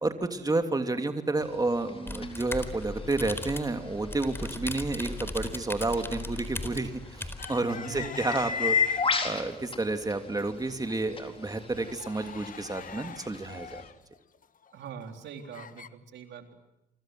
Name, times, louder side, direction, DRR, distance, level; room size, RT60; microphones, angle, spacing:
voice 1, 0.0-8.8 9.2-13.8, right 2 dB, 20° right, 7 dB, 2.9 m, -30 dB
sound 1, 1.4-13.9, left 5 dB, 30° left, 4.4 m, -36 dB
sound 2, 2.1-7.5, left 2 dB, 10° left, 4.2 m, -38 dB
sound 3, 7.4-9.4 9.8-10.4 10.8-10.9 11.3-15.9, left 7 dB, 50° left, 1.4 m, -43 dB
voice 2, 14.7-16.5, right 7 dB, 75° right, 6 dB, 3.8 m, -43 dB
28.0 x 25.5 x 7.8 m, 0.85 s
cardioid pair, 75°, 18 cm